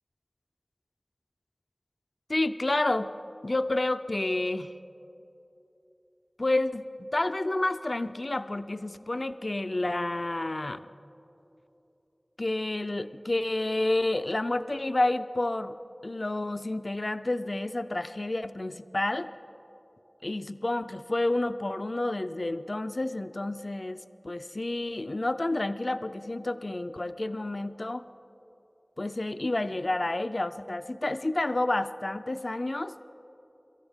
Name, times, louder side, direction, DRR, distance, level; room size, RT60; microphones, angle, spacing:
voice 1, 2.3-3.1 3.4-4.7 6.4-6.9 7.1-10.8 12.4-15.8 16.0-19.3 20.2-28.0 29.0-32.9, left 2 dB, 60° left, 11 dB, 0.4 m, -29 dB
25.5 x 14.0 x 3.6 m, 3.0 s
wide cardioid pair, 50°, 0 cm